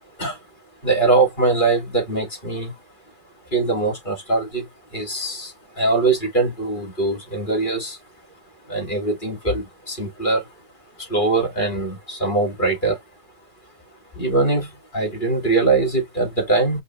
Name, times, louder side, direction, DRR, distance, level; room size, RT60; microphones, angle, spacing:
voice 1, 0.8-2.7 3.5-8.0 8.6-10.5 11.0-13.0 14.1-16.8, right 3 dB, 30° left, 3.1 m, -22 dB
5.5 x 2.8 x 2.9 m
omnidirectional pair, 1.6 m